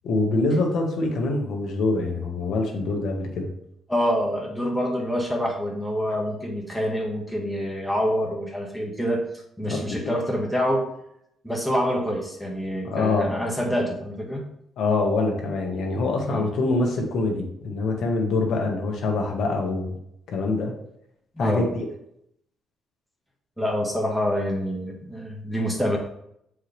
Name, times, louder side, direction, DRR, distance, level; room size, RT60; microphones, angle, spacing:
voice 1, 0.0-3.5 9.6-10.1 12.8-13.3 14.8-19.9 20.3-20.7 21.4-21.8, left 3 dB, 70° left, 2 dB, 1.6 m, -25 dB
voice 2, 3.9-9.2 9.6-10.8 11.4-14.4 16.3-16.5 21.3-21.7 23.6-26.0, equal, 5° left, 0 dB, 1.7 m, -26 dB
7.3 x 4.8 x 3.4 m, 0.75 s
cardioid pair, 90°, 0 cm